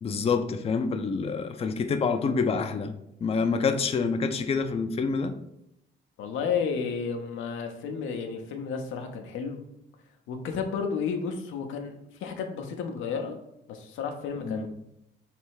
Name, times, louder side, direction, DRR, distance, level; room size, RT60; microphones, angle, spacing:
voice 1, 0.0-2.9 3.2-5.3 14.4-14.7, left 5 dB, 30° left, 7 dB, 0.4 m, -27 dB
voice 2, 6.2-9.6 10.3-13.4 13.7-14.7, left 6 dB, 90° left, 4 dB, 0.7 m, -32 dB
3.3 x 3.2 x 4.7 m, 0.80 s
cardioid pair, 90°, 20 cm